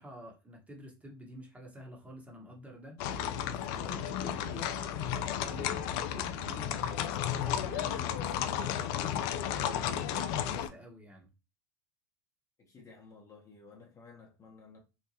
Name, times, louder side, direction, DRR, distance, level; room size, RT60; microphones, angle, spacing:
voice 1, 0.0-3.0 3.5-4.8 5.3-9.0 9.5-11.3, equal, 10° right, 0.9 m, -48 dB
sound 1, 3.0-10.7, left 9 dB, 55° left, 0.4 m, -33 dB
voice 2, 12.6-14.8, left 4 dB, 25° left, 0.8 m, -54 dB
2.9 x 2.1 x 2.7 m
hypercardioid pair, 90°, 13 cm